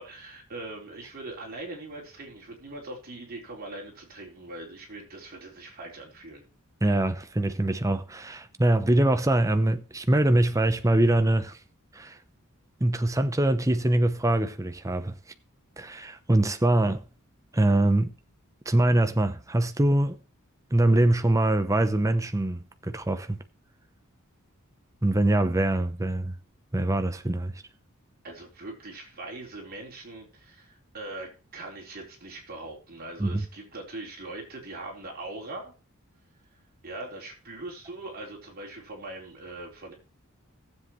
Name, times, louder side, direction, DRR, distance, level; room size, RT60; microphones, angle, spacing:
voice 1, 0.0-6.4 28.2-35.7 36.8-39.9, right 2 dB, 45° right, 4.2 m, -41 dB
voice 2, 6.8-11.6 11.9-12.2 12.8-15.1 15.8-17.0 17.5-18.1 18.7-20.2 20.7-23.4 25.0-26.3 26.7-27.5 33.2-33.4, right 1 dB, 15° right, 0.7 m, -23 dB
18.0 x 7.7 x 3.1 m
head